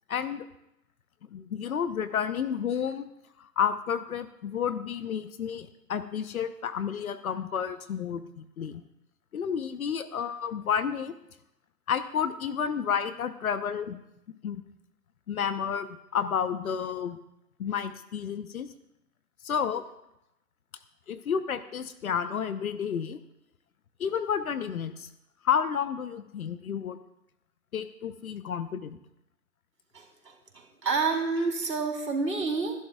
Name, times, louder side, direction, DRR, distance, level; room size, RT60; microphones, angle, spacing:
voice 1, 0.1-0.5 1.3-3.0 3.4-8.8 9.3-11.1 11.9-14.0 14.4-14.6 15.3-17.2 17.6-18.7 19.4-19.8 21.1-23.2 24.0-25.1 25.4-27.0 27.7-29.0, left 7 dB, 55° left, 11 dB, 0.9 m, -31 dB
voice 2, 30.8-32.7, right 4 dB, 80° right, 1 dB, 3.8 m, -28 dB
25.0 x 11.0 x 2.3 m, 0.84 s
hypercardioid pair, 140°, 50 cm